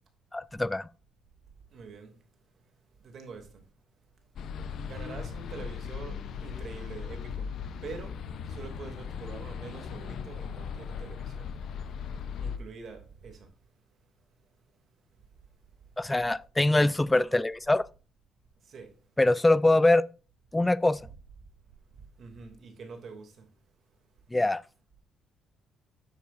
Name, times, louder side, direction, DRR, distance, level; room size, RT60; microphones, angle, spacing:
voice 1, 0.3-0.9 16.0-17.9 19.2-20.0 20.5-21.1 24.3-24.6, left 2 dB, 15° left, 0.4 m, -23 dB
voice 2, 1.7-2.2 3.0-3.6 4.8-7.5 7.8-8.2 8.5-11.5 12.4-13.5 18.6-18.9 22.2-23.4, right 4 dB, 60° right, 2.7 m, -45 dB
sound 1, 4.4-12.6, left 7 dB, 65° left, 0.8 m, -38 dB
9.7 x 6.9 x 2.6 m
supercardioid pair, 75°, 0 cm